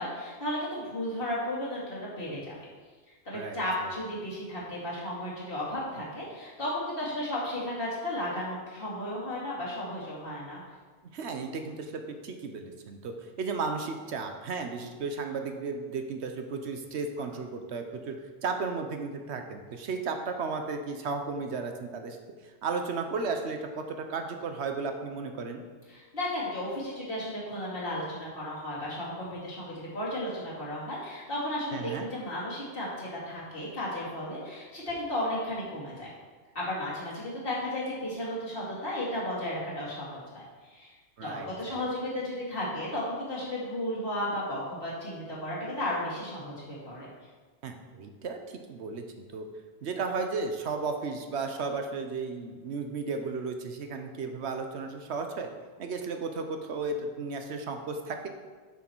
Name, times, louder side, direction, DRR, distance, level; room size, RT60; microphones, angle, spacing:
voice 1, 0.0-2.5 3.2-10.6 25.9-36.1 36.5-40.9 41.2-47.1, left 1 dB, 55° left, -7 dB, 2.6 m, -34 dB
voice 2, 3.3-3.9 11.1-18.2 18.4-22.2 22.6-25.6 31.7-32.1 41.2-41.9 47.6-49.5 49.8-55.5 55.8-58.3, right 4 dB, 75° right, 5 dB, 1.1 m, -34 dB
7.0 x 6.4 x 4.5 m, 1.4 s
omnidirectional pair, 1.1 m